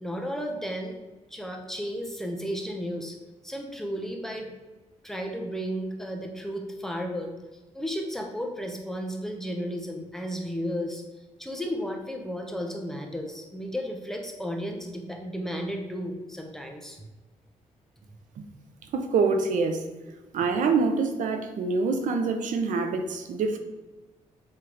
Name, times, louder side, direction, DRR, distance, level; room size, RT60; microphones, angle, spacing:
voice 1, 0.0-0.9 1.3-3.2 3.4-4.5 5.0-7.3 7.7-11.0 11.4-17.0, equal, 5° left, 2 dB, 1.1 m, -33 dB
voice 2, 18.9-19.8 20.3-23.6, right 4 dB, 85° right, 6 dB, 0.8 m, -25 dB
7.4 x 3.3 x 5.0 m, 1.2 s
cardioid pair, 95°, 13 cm